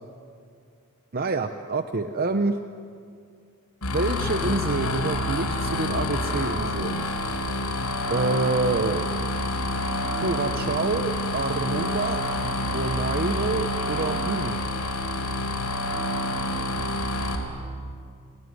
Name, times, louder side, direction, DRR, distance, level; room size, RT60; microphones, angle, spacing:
voice 1, 1.1-2.6 3.9-7.1 8.1-9.3 10.2-14.6, right 3 dB, 45° right, 8 dB, 0.9 m, -27 dB
sound 1, 3.8-17.4, left 1 dB, 90° left, 4.3 m, -28 dB
28.5 x 19.5 x 9.7 m, 2.3 s
head